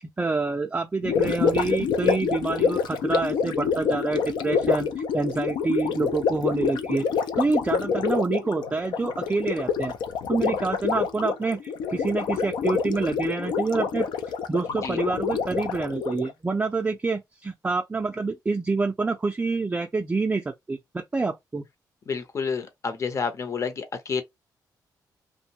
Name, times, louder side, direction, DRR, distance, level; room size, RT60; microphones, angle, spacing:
voice 1, 0.2-7.1 7.4-9.9 10.3-14.1 14.5-21.6, right 3 dB, 20° right, 0.3 m, -27 dB
Gurgling, 1.0-16.3, left 6 dB, 85° left, 0.4 m, -27 dB
voice 2, 22.1-24.2, left 5 dB, 40° left, 0.6 m, -29 dB
2.6 x 2.1 x 2.8 m
cardioid pair, 105°, 8 cm